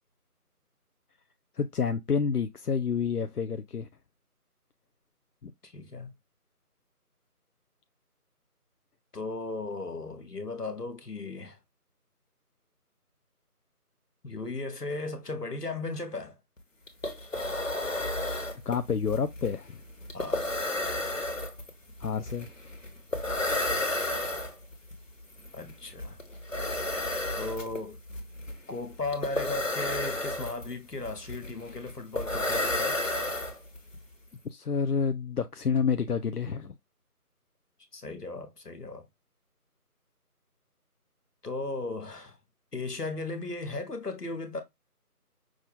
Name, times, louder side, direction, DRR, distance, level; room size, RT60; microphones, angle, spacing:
voice 1, 1.5-3.9 5.4-5.5 18.7-19.8 22.0-22.5 34.4-36.7, left 6 dB, 75° left, 0.6 m, -29 dB
voice 2, 5.6-6.1 9.1-11.6 14.2-16.4 20.1-20.4 25.5-26.2 27.3-28.0 28.7-33.0 37.9-39.0 41.4-42.4 42.7-44.6, left 3 dB, 90° left, 1.6 m, -36 dB
sound 1, 16.6-16.7 16.9-34.0, left 1 dB, 55° left, 1.4 m, -32 dB
6.1 x 2.5 x 3.5 m
figure-of-eight pair, 180°, 46 cm